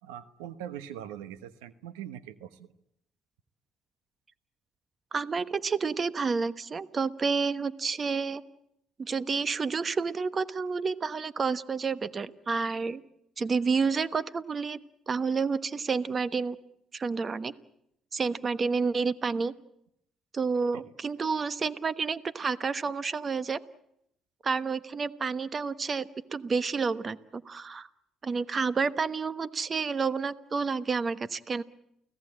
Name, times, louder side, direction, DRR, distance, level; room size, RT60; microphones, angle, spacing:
voice 1, 0.0-2.7 20.7-20.8, right 10 dB, 90° right, 13 dB, 1.1 m, -42 dB
voice 2, 5.1-8.4 9.0-13.0 13.4-14.8 15.1-16.6 16.9-17.5 18.1-19.5 20.3-23.6 24.4-27.9 28.2-31.6, right 5 dB, 40° right, 14 dB, 1.2 m, -29 dB
29.5 x 17.0 x 8.8 m, 0.79 s
supercardioid pair, 65°, 0 cm